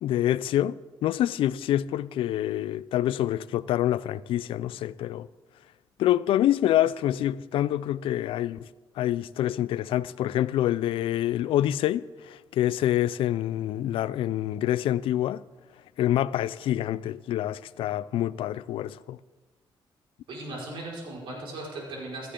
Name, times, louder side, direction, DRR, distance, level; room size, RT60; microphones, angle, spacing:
voice 1, 0.0-5.3 6.0-8.7 9.0-15.4 16.0-19.2, left 12 dB, 85° left, 0.4 m, -26 dB
voice 2, 20.3-22.3, right 2 dB, 70° right, 4.9 m, -37 dB
16.5 x 13.5 x 3.8 m
cardioid pair, 130°, 9 cm